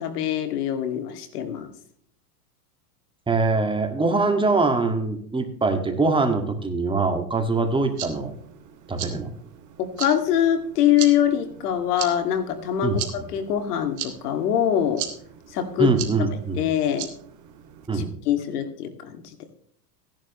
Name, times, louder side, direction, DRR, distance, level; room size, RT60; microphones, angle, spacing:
voice 1, 0.0-1.7 9.8-15.0 15.5-15.9 16.6-17.1 17.9-19.2, left 10 dB, 75° left, 8 dB, 2.3 m, -23 dB
voice 2, 3.3-8.3 8.9-9.3 12.8-13.0 15.8-16.6 17.9-18.1, right 3 dB, 10° right, 6 dB, 1.9 m, -23 dB
sound 1, 7.7-17.9, right 10 dB, 40° right, 2.1 m, -38 dB
15.5 x 11.0 x 3.1 m, 0.64 s
hypercardioid pair, 115°, 47 cm